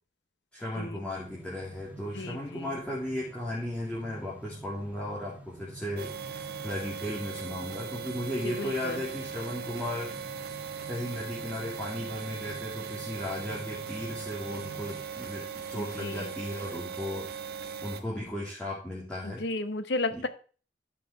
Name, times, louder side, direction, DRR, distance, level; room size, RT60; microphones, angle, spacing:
voice 1, 0.5-10.2 10.9-17.3 17.8-19.4 20.1-20.3, left 1 dB, 5° left, -7 dB, 2.7 m, -36 dB
sound 1, 1.1-15.0, right 2 dB, 10° right, 1.5 m, -49 dB
voice 2, 2.1-2.7 8.4-9.0 15.7-16.3 19.2-20.3, left 2 dB, 70° left, 12 dB, 0.9 m, -34 dB
sound 2, 6.0-18.0, right 6 dB, 60° right, 1.2 m, -39 dB
11.5 x 5.7 x 4.7 m, 0.39 s
head